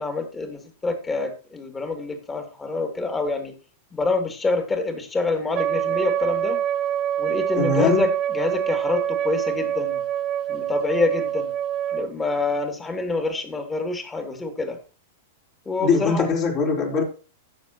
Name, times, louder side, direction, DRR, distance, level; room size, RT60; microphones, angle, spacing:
voice 1, 0.0-3.5 3.9-6.6 7.2-10.0 10.5-11.5 11.9-14.8 15.7-16.3, left 3 dB, 15° left, 5 dB, 2.6 m, -26 dB
Wind instrument woodwind instrument, 5.5-12.1, right 10 dB, 35° right, 0.5 m, -25 dB
voice 2, 7.6-8.1 15.8-17.0, left 4 dB, 45° left, -2 dB, 4.0 m, -21 dB
16.0 x 6.9 x 3.0 m, 0.36 s
hypercardioid pair, 105°, 0 cm